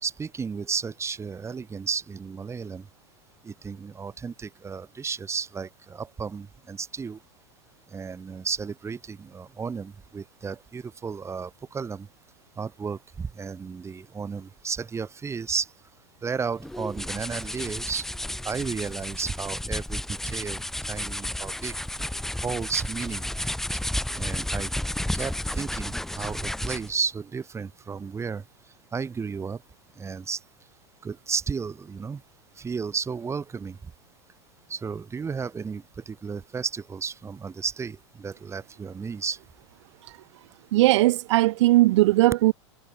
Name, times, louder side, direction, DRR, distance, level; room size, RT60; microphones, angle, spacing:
voice 1, 0.0-2.8 3.5-7.2 7.9-12.1 12.6-15.7 16.2-18.0 18.4-20.6 20.9-21.7 22.4-23.3 24.2-24.7 25.1-28.4 28.9-29.6 30.0-30.4 31.0-32.2 32.6-33.8 34.7-39.4, right 5 dB, 15° right, 3.8 m, -33 dB
sound 1, 16.6-27.0, left 1 dB, ahead, 0.8 m, -32 dB
voice 2, 40.7-42.5, right 17 dB, 70° right, 0.4 m, -19 dB
hypercardioid pair, 115°, 16 cm